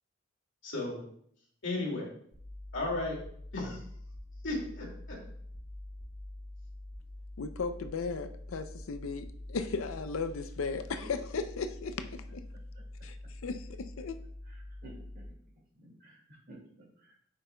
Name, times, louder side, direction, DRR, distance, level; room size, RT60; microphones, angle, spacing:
voice 1, 0.6-1.0 1.6-2.1 2.7-3.2 3.5-3.8 4.4-5.2, left 2 dB, 65° left, -2 dB, 2.3 m, -34 dB
sound 1, 2.3-15.3, left 1 dB, ahead, 2.9 m, -46 dB
voice 2, 7.4-12.4 13.0-14.2, left 4 dB, 85° left, 9 dB, 0.5 m, -36 dB
voice 3, 14.5-15.2 15.8-17.2, equal, 50° right, -1 dB, 2.2 m, -52 dB
9.4 x 5.8 x 2.2 m, 0.65 s
head